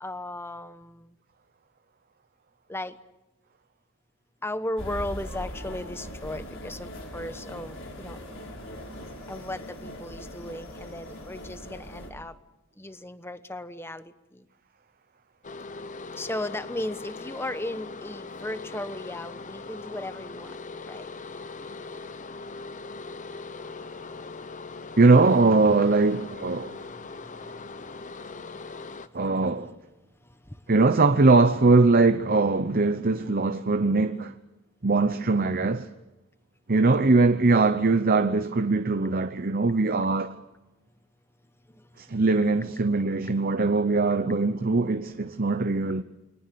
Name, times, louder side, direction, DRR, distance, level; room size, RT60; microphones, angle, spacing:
voice 1, 0.0-1.1 2.7-3.0 4.4-8.3 9.3-12.4 12.8-14.5 16.2-20.6 20.9-21.1 27.3-29.8 30.2-30.7 41.7-42.0, left 1 dB, 10° left, 1.1 m, -37 dB
sound 1, 4.8-12.1, equal, 60° left, 5.4 m, -40 dB
sound 2, 15.4-29.1, left 3 dB, 35° left, 0.9 m, -40 dB
voice 2, 25.0-26.8 29.1-29.7 30.7-34.3 34.8-35.9 36.7-40.4 42.0-46.0, right 3 dB, 45° right, 0.9 m, -21 dB
29.0 x 23.0 x 6.9 m
head